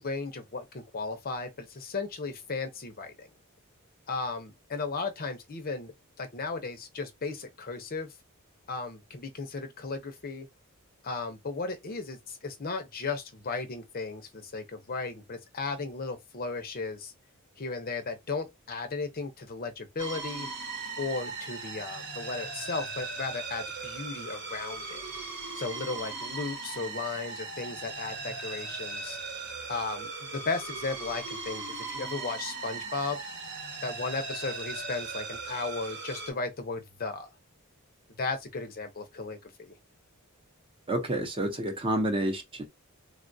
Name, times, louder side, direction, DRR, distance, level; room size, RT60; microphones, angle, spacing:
voice 1, 0.0-3.3 4.1-8.1 8.7-10.5 11.0-17.1 17.6-20.5 21.0-25.0 25.5-29.2 29.7-33.2 33.8-37.3 38.2-39.7, left 4 dB, 45° left, 0.6 m, -35 dB
sound 1, 20.0-36.3, right 4 dB, 55° right, 1.0 m, -38 dB
voice 2, 40.9-42.7, right 1 dB, 25° right, 0.7 m, -29 dB
3.5 x 2.2 x 2.6 m
head